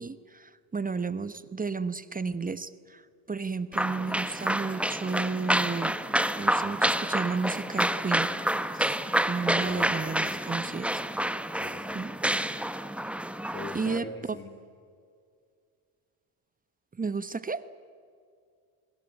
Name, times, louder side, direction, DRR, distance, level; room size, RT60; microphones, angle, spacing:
voice 1, 0.0-6.0 6.3-8.3 8.7-9.0 9.3-11.0 11.9-12.1 13.7-14.4 16.9-17.7, right 4 dB, 20° right, 15 dB, 1.0 m, -33 dB
sound 1, 3.7-14.0, right 1 dB, 5° right, 1.2 m, -28 dB
voice 2, 9.6-10.2 11.5-12.1 13.5-14.5, left 3 dB, 25° left, 5 dB, 2.6 m, -42 dB
28.5 x 20.5 x 9.1 m, 2.3 s
supercardioid pair, 85°, 46 cm